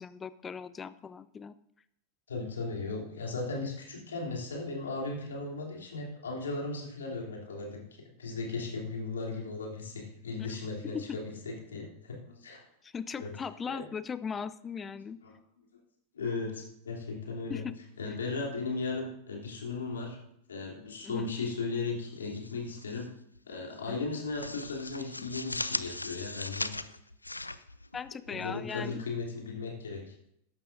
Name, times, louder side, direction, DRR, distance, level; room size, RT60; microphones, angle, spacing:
voice 1, 0.0-1.5 10.8-11.2 12.8-15.2 17.5-17.7 21.0-21.3 23.9-24.0 27.9-29.0, left 6 dB, 20° left, 15 dB, 0.5 m, -38 dB
voice 2, 2.3-12.6 13.1-13.3 13.7-13.8 15.2-15.3 16.1-17.6 18.0-20.2 20.5-23.1 23.5-26.7 28.3-30.3, left 3 dB, 70° left, -1 dB, 3.1 m, -36 dB
sound 1, 22.2-23.1 23.4-23.6 24.0-28.4, left 2 dB, 85° left, 0.4 m, -39 dB
14.0 x 11.0 x 2.6 m, 0.77 s
figure-of-eight pair, 90°, 0 cm